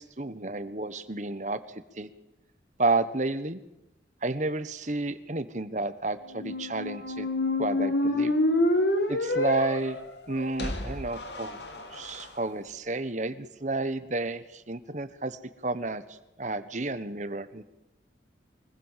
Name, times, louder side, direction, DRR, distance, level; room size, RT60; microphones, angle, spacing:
voice 1, 0.0-1.6 2.0-2.1 2.8-3.6 4.2-7.3 7.6-8.3 9.1-10.0 10.3-11.6 11.9-16.0 16.4-17.6, right 2 dB, 40° right, 12 dB, 1.3 m, -31 dB
sound 1, 6.3-12.2, left 1 dB, 70° left, 2.5 m, -28 dB
24.0 x 21.0 x 7.5 m, 0.93 s
head